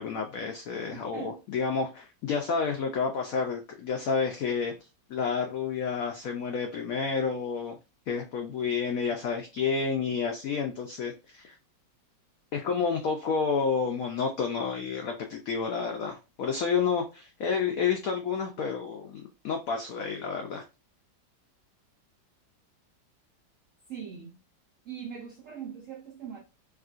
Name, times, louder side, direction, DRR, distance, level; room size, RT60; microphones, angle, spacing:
voice 1, 0.0-4.7 5.1-7.8 8.1-11.6 12.5-20.6, left 5 dB, 90° left, 0.7 m, -30 dB
voice 2, 0.9-1.4 23.9-24.4 24.8-26.4, right 8 dB, 80° right, 0.7 m, -41 dB
3.5 x 2.4 x 2.4 m
omnidirectional pair, 2.0 m